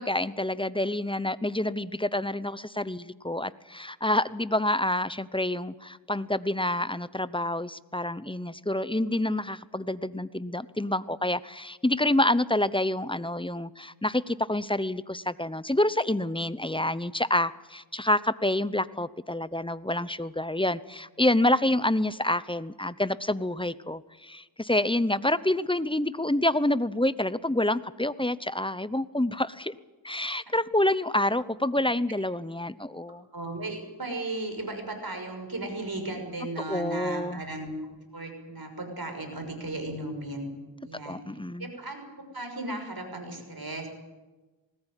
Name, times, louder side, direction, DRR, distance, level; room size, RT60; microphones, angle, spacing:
voice 1, 0.0-29.8 30.0-33.2 36.7-37.4 41.1-41.7, left 1 dB, 10° left, 16 dB, 0.9 m, -27 dB
voice 2, 33.3-37.7 38.1-40.5 40.8-41.2 41.6-43.9, right 2 dB, 50° right, 5 dB, 6.2 m, -36 dB
20.5 x 18.5 x 9.1 m, 1.2 s
cardioid pair, 45°, 46 cm